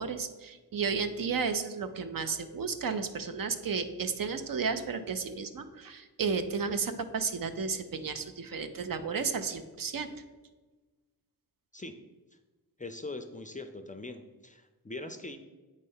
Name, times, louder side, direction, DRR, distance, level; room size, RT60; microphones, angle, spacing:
voice 1, 0.0-10.1, right 5 dB, 60° right, 9 dB, 0.6 m, -33 dB
voice 2, 12.8-15.4, left 2 dB, 20° left, 7 dB, 0.4 m, -41 dB
8.3 x 3.3 x 5.5 m, 1.2 s
wide cardioid pair, 125°, 38 cm